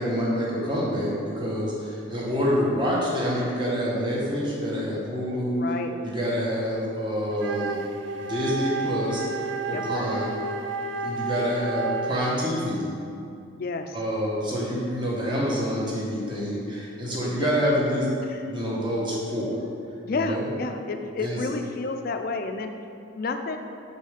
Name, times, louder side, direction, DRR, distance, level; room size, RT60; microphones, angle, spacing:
voice 1, 0.0-5.6 6.0-7.8 8.2-9.2 9.7-10.3 11.0-12.9 13.9-18.1 18.5-19.6 20.1-20.5 21.2-21.4, equal, 25° right, -5 dB, 1.1 m, -27 dB
voice 2, 5.6-5.9 9.7-9.8 13.5-14.0 17.1-17.7 18.2-18.4 20.0-22.7 23.1-23.6, left 3 dB, 45° left, 6 dB, 0.4 m, -31 dB
Wind instrument woodwind instrument, 7.3-12.6, right 3 dB, 65° right, 0.3 m, -31 dB
5.4 x 4.0 x 5.0 m, 2.5 s
head